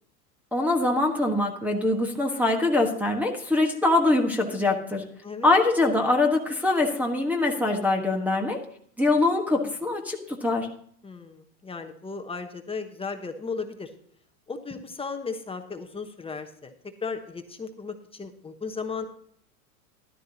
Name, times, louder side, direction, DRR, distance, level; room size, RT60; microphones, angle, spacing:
voice 1, 0.5-5.0 5.4-8.6 9.0-10.7, left 2 dB, 5° right, -2 dB, 1.4 m, -23 dB
voice 2, 11.0-13.9 14.5-16.7 17.0-19.0, left 4 dB, 10° left, 6 dB, 1.1 m, -35 dB
13.0 x 12.0 x 2.8 m, 0.63 s
hypercardioid pair, 120°, 46 cm